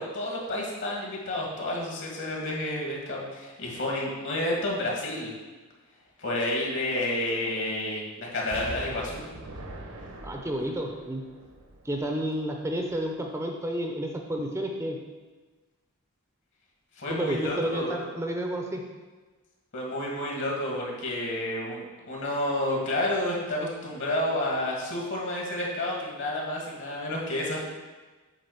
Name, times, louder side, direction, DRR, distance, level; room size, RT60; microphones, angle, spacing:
voice 1, 0.0-5.3 6.2-9.2 17.0-18.1 19.7-27.6, left 1 dB, 60° left, -2 dB, 2.2 m, -30 dB
Explosion, 8.5-12.4 12.9-13.0, right 1 dB, 85° right, 1.3 m, -42 dB
voice 2, 10.2-11.2 11.8-15.0 17.1-18.8, equal, 10° right, 2 dB, 0.6 m, -31 dB
8.1 x 3.9 x 6.7 m, 1.3 s
head